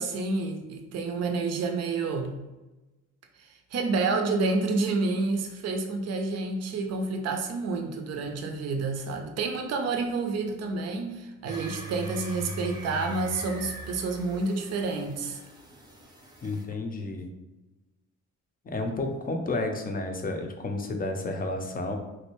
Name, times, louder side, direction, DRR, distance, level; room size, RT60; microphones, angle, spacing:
voice 1, 0.0-2.4 3.4-15.4, right 3 dB, 55° right, 4 dB, 0.5 m, -29 dB
sound 1, 11.5-16.6, right 1 dB, 15° right, 0.7 m, -41 dB
voice 2, 16.4-17.3 18.6-22.0, left 2 dB, 30° left, 4 dB, 0.5 m, -31 dB
3.2 x 2.5 x 3.0 m, 1.1 s
cardioid pair, 95°, 31 cm